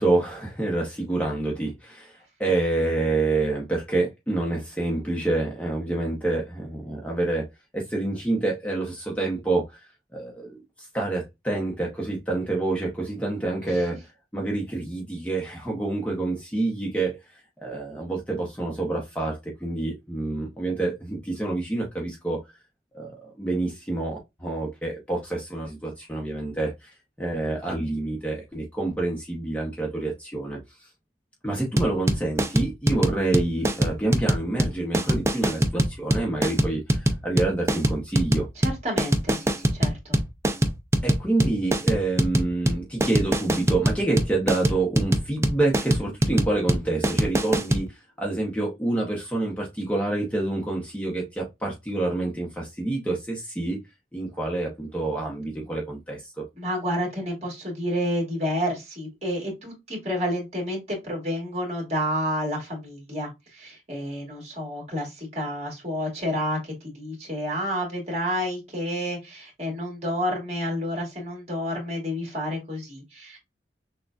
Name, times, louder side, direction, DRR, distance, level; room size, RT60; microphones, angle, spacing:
voice 1, 0.0-7.5 7.7-9.6 10.1-14.0 14.3-17.2 17.6-22.4 22.9-26.9 27.2-30.9 31.4-38.5 41.0-53.8 54.1-56.5, right 2 dB, 10° left, 0.8 m, -27 dB
sound 1, 31.8-47.8, right 1 dB, 15° right, 0.4 m, -23 dB
voice 2, 38.6-40.2 56.6-73.4, equal, 40° right, 2.1 m, -30 dB
6.3 x 2.3 x 2.4 m
head